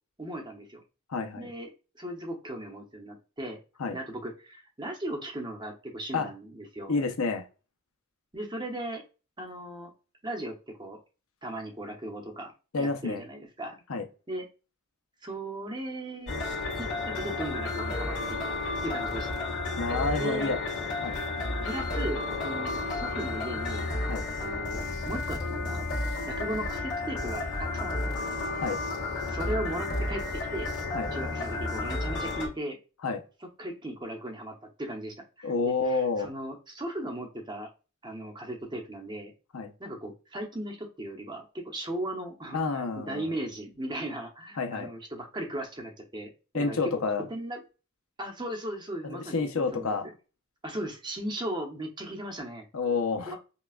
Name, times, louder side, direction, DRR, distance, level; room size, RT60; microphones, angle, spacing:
voice 1, 0.2-0.8 1.4-1.7 2.0-3.6 3.9-7.0 8.3-9.0 9.4-9.9 10.2-11.0 11.4-12.5 12.8-13.8 14.3-14.5 15.2-16.4 16.8-18.4 18.8-19.5 20.2-20.5 21.6-23.9 24.4-25.9 26.2-28.3 29.3-30.7 31.1-32.8 33.6-35.5 35.8-37.7 38.0-39.3 39.8-46.9 47.3-47.6 48.2-50.1 50.6-52.6 53.2-53.4, right 1 dB, 20° right, 2 dB, 0.8 m, -37 dB
voice 2, 1.1-1.5 3.8-4.0 6.1-6.3 6.9-7.4 12.7-13.2 13.9-14.0 19.8-20.6 21.0-21.2 24.1-24.3 28.5-28.8 30.9-31.1 33.0-33.2 35.4-36.3 39.5-39.7 42.5-43.3 44.6-44.9 46.5-47.3 49.0-50.1 52.7-53.4, left 4 dB, 75° left, 6 dB, 0.7 m, -29 dB
sound 1, 16.3-32.5, left 2 dB, 55° left, 1.7 m, -32 dB
5.6 x 2.3 x 2.4 m, 0.32 s
head